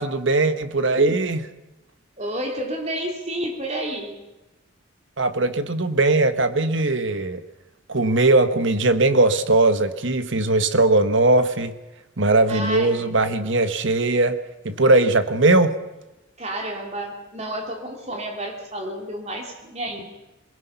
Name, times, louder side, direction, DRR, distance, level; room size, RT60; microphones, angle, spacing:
voice 1, 0.0-1.5 5.2-7.4 7.9-11.7 12.2-14.4 14.6-15.8, right 2 dB, 70° right, 10 dB, 1.3 m, -19 dB
voice 2, 2.2-4.2 12.5-12.9 16.4-20.0, right 1 dB, 35° right, 2 dB, 2.8 m, -30 dB
22.0 x 21.5 x 5.8 m, 0.99 s
head